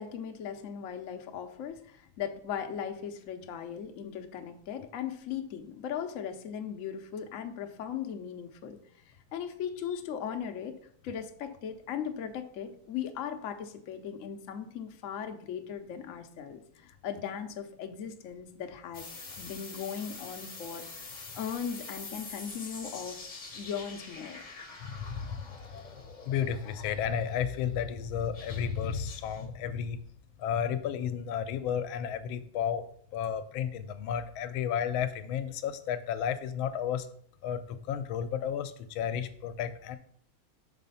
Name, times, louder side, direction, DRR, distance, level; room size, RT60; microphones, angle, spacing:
voice 1, 0.0-8.8 9.3-10.8 11.0-19.1 19.4-23.2 23.5-24.4, left 8 dB, 65° left, 5 dB, 0.8 m, -38 dB
sound 1, 18.9-27.4 28.3-29.4, left 3 dB, 35° left, 0.7 m, -45 dB
voice 2, 24.8-25.5 26.3-30.0 30.4-32.9 33.1-37.1 37.4-37.6 37.9-40.0, left 8 dB, 85° left, 10 dB, 1.4 m, -32 dB
6.0 x 4.1 x 5.4 m, 0.62 s
omnidirectional pair, 2.2 m